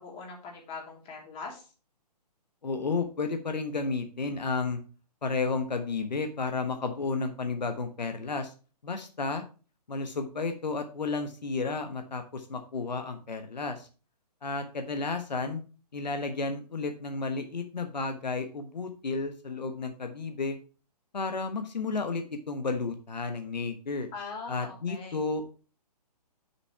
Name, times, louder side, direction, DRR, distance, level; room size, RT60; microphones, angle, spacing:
voice 1, 0.0-1.7 24.1-25.2, left 4 dB, 25° left, -1 dB, 3.1 m, -41 dB
voice 2, 2.6-4.8 5.2-8.5 8.8-9.4 9.9-13.9 14.4-15.6 15.9-20.6 21.1-24.1 24.5-25.5, left 4 dB, 85° left, 6 dB, 1.2 m, -32 dB
6.4 x 5.9 x 4.6 m, 0.36 s
hypercardioid pair, 140°, 21 cm